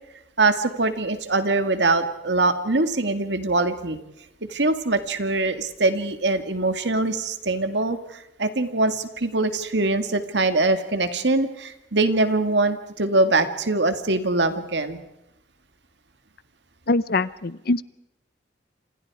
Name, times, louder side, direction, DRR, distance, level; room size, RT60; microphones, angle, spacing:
voice 1, 0.4-4.0 4.4-15.0, right 2 dB, 65° right, 9 dB, 2.0 m, -23 dB
voice 2, 16.9-17.8, left 2 dB, 55° left, 18 dB, 0.8 m, -23 dB
28.5 x 27.0 x 4.9 m, 0.88 s
head